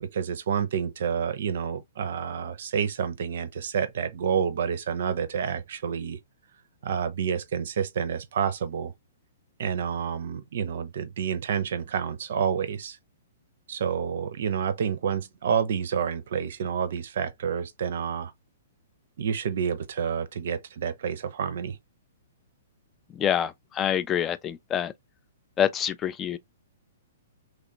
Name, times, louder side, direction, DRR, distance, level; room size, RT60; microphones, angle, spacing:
voice 1, 0.0-6.2 6.8-8.9 9.6-13.0 13.7-18.3 19.2-21.8, right 7 dB, 55° right, 0.5 m, -29 dB
voice 2, 23.1-24.9 25.6-26.4, left 9 dB, 20° left, 0.3 m, -26 dB
3.1 x 2.4 x 2.8 m
figure-of-eight pair, 115°, 0 cm